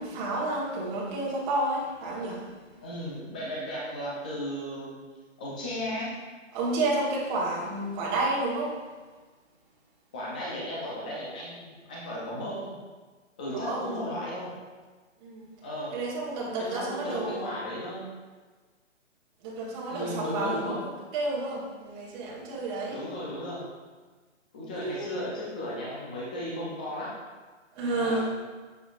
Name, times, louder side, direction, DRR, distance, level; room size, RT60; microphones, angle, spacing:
voice 1, 0.0-2.6 6.5-8.8 13.5-14.0 15.2-15.5 15.9-17.6 19.4-23.0 24.8-25.1 27.7-28.3, right 2 dB, 20° right, -5 dB, 1.4 m, -31 dB
voice 2, 2.8-5.0 5.4-6.2 10.1-12.7 13.4-14.5 15.6-16.0 16.6-18.1 19.9-20.8 22.9-23.6 24.5-27.1 27.8-28.3, equal, 5° left, -5 dB, 0.5 m, -35 dB
8.9 x 7.1 x 2.5 m, 1.4 s
figure-of-eight pair, 140°, 38 cm